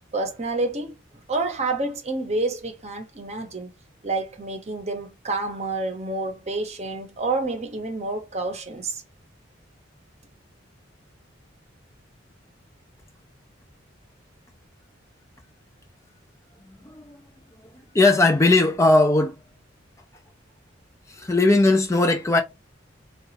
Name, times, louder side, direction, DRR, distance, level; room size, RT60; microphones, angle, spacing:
voice 1, 0.1-0.9 1.3-3.7 4.0-9.0, right 2 dB, 35° right, 0.8 m, -28 dB
voice 2, 16.8-17.2 17.9-19.4 21.1-22.4, left 2 dB, 15° left, 0.4 m, -18 dB
3.8 x 2.3 x 2.9 m
head